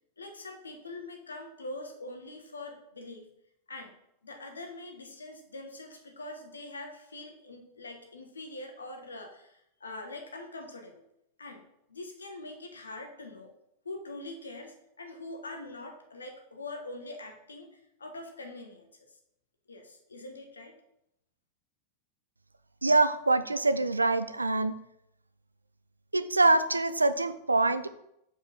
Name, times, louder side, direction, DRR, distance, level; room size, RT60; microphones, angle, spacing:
voice 1, 0.2-3.3 3.7-3.9 4.2-11.0 11.4-11.6 11.9-13.5 13.8-19.2 19.7-20.7, left 2 dB, 75° left, 4 dB, 1.1 m, -43 dB
voice 2, 22.8-24.8 26.1-27.9, right 2 dB, 80° right, 13 dB, 0.4 m, -25 dB
5.0 x 5.0 x 5.2 m, 0.78 s
figure-of-eight pair, 90°, 0 cm